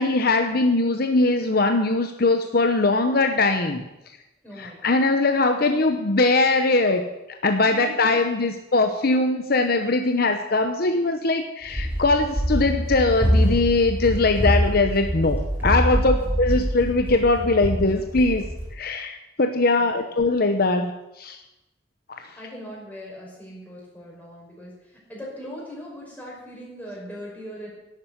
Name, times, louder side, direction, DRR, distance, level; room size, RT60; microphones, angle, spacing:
voice 1, 0.0-3.8 4.6-7.1 7.4-18.4 18.7-20.9 21.2-21.4 22.1-22.2, left 3 dB, 55° left, 6 dB, 0.9 m, -21 dB
voice 2, 4.4-5.1 7.6-8.3 16.0-16.3 19.8-20.1 22.4-27.7, equal, 10° left, -4 dB, 5.6 m, -40 dB
Run, 11.7-18.7, equal, 10° right, 4.1 m, -25 dB
11.5 x 8.3 x 9.4 m, 0.93 s
head